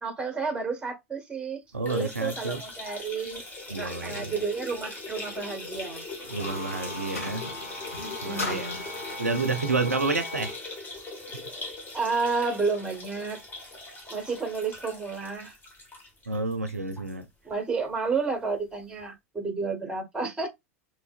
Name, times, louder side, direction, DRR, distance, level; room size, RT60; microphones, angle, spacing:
voice 1, 0.0-3.4 3.8-6.0 7.1-7.2 8.0-8.8 11.9-13.4 14.1-15.5 17.4-20.5, right 4 dB, 10° right, 1.4 m, -31 dB
sound 1, 1.7-17.1 17.5-17.6 17.9-18.0 19.0-19.1, left 2 dB, 20° left, 1.5 m, -40 dB
voice 2, 1.7-2.6 3.7-4.2 6.3-7.5 8.2-8.7 9.2-10.5 16.3-17.3, right 3 dB, 85° right, 0.4 m, -29 dB
sound 2, 6.2-10.6, left 2 dB, 85° left, 1.6 m, -37 dB
3.5 x 3.1 x 2.4 m
figure-of-eight pair, 85°, 8 cm